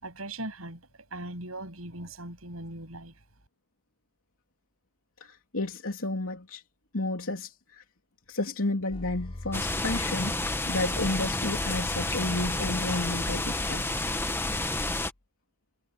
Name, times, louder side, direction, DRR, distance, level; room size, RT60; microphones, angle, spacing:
voice 1, 0.0-3.1, right 2 dB, 85° right, 7.9 m, -39 dB
voice 2, 5.2-6.6 6.9-7.8 8.3-13.8, left 2 dB, 75° left, 3.2 m, -32 dB
sound 1, 8.9-15.1, left 1 dB, 25° left, 0.9 m, -40 dB
sound 2, 9.5-15.1, left 2 dB, 10° left, 1.3 m, -30 dB
head